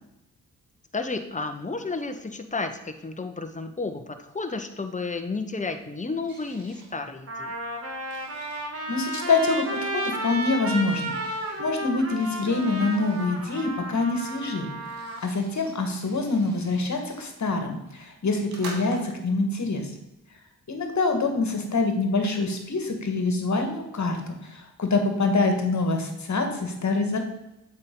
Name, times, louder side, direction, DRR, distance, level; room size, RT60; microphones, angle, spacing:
voice 1, 0.9-7.6, left 3 dB, 20° left, 7 dB, 1.0 m, -32 dB
sound 1, 6.2-6.9 7.6-9.9 10.7-11.6 12.1-13.3 14.3-14.4 14.6-17.3 17.8-19.3, right 2 dB, 65° right, 1.9 m, -47 dB
Trumpet, 6.5-6.6 7.3-15.2, right 1 dB, 35° right, 1.6 m, -33 dB
voice 2, 8.9-14.7 15.0-19.9 20.7-27.2, left 3 dB, 45° left, 4 dB, 1.7 m, -25 dB
7.8 x 5.5 x 3.9 m, 0.93 s
hypercardioid pair, 40°, 39 cm